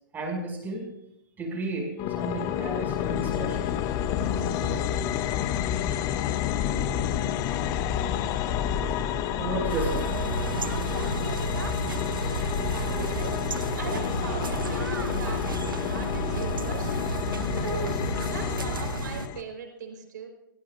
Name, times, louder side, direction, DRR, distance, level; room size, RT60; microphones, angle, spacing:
voice 1, 0.1-0.8 1.4-4.5 4.7-4.8 9.4-10.7, right 2 dB, 15° right, 0 dB, 6.0 m, -34 dB
sound 1, 2.0-19.4, left 9 dB, 30° left, 0.9 m, -29 dB
sound 2, 9.7-19.3, right 6 dB, 80° right, 0.7 m, -33 dB
voice 2, 12.6-15.4 15.9-17.1 17.5-20.3, right 6 dB, 65° right, 3 dB, 4.2 m, -40 dB
21.5 x 17.0 x 2.5 m, 0.82 s
hypercardioid pair, 115°, 11 cm